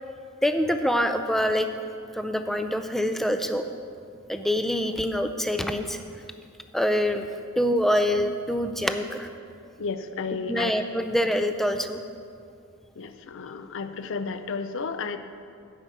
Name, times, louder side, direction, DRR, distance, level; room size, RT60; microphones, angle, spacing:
voice 1, 0.4-1.7 2.2-3.6 4.3-6.0 6.7-7.3 7.6-9.3 10.5-12.0, equal, ahead, 7 dB, 0.4 m, -25 dB
voice 2, 9.8-10.8 13.0-15.2, left 4 dB, 60° left, 10 dB, 0.5 m, -32 dB
10.0 x 5.3 x 7.2 m, 2.4 s
head